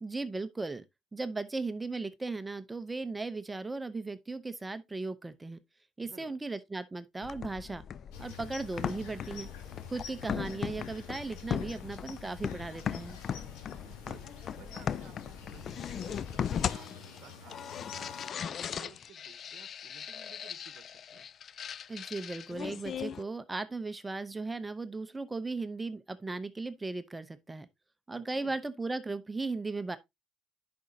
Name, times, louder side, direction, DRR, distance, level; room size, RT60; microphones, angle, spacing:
voice 1, 0.0-0.8 1.1-5.6 6.0-7.8 8.2-9.5 9.9-13.2 21.9-27.7 28.1-30.0, right 3 dB, 15° right, 0.7 m, -37 dB
voice 2, 6.0-6.4 13.7-21.3 28.2-28.5, right 10 dB, 60° right, 0.9 m, -56 dB
sound 1, 7.2-23.2, left 8 dB, 45° left, 0.3 m, -38 dB
sound 2, 8.1-18.3, left 6 dB, 80° left, 2.3 m, -49 dB
10.5 x 5.3 x 2.8 m
supercardioid pair, 95°, 0 cm